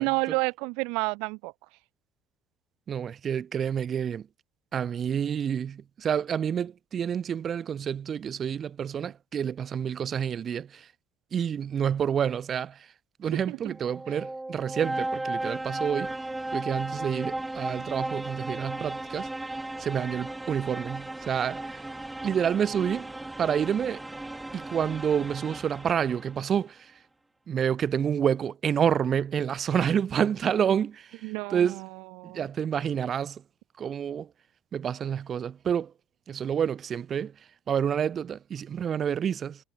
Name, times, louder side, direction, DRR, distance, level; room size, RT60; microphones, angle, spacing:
voice 1, 0.0-1.5 13.2-13.7 31.2-31.9 32.2-32.5, right 30 dB, 80° right, 1.8 m, -30 dB
voice 2, 2.9-4.3 4.7-10.9 11.3-12.8 13.2-16.1 16.5-19.3 19.8-21.8 22.2-23.1 23.4-24.0 24.5-26.9 27.5-31.2 31.5-31.8 32.2-33.4 33.8-34.3 34.7-35.9 36.3-37.3 37.7-39.6, right 8 dB, 25° right, 2.3 m, -28 dB
sound 1, 13.6-26.5, right 2 dB, 5° right, 4.7 m, -35 dB
cardioid pair, 175°, 0 cm